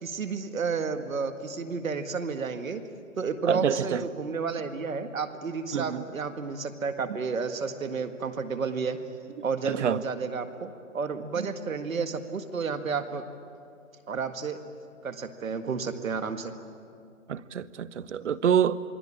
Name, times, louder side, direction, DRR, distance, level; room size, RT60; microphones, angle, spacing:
voice 1, 0.0-2.8 3.2-9.0 9.4-13.2 14.1-14.6 15.0-16.6, right 5 dB, 80° right, 1.9 m, -31 dB
voice 2, 3.4-4.0 5.7-6.1 9.6-10.0 17.3-18.8, right 8 dB, 60° right, 1.1 m, -26 dB
28.0 x 21.5 x 8.7 m
hypercardioid pair, 155°, 40 cm